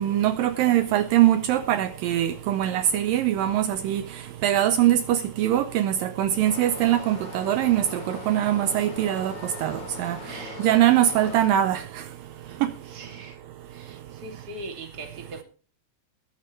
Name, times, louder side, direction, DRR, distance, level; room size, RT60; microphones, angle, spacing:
voice 1, 0.0-4.0 4.4-9.3 9.6-10.2 10.6-11.8, right 12 dB, 75° right, 2.4 m, -22 dB
Stream, 6.4-11.5, left 2 dB, 30° left, 4.2 m, -40 dB
voice 2, 10.2-10.7 11.2-11.3 12.2-13.4 13.7-15.4, right 2 dB, 30° right, 2.7 m, -41 dB
20.5 x 10.0 x 3.2 m
omnidirectional pair, 4.2 m